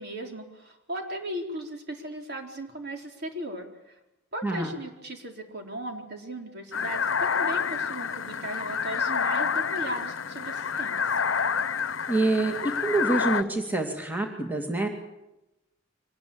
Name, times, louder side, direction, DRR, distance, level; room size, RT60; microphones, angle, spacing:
voice 1, 0.0-3.9 4.3-11.2, right 1 dB, 55° right, 3 dB, 4.1 m, -37 dB
voice 2, 4.4-4.7 12.1-14.9, right 2 dB, 10° right, 3 dB, 2.4 m, -26 dB
sound 1, 6.7-13.4, left 6 dB, 80° left, 1.0 m, -28 dB
25.0 x 19.5 x 8.7 m, 0.91 s
head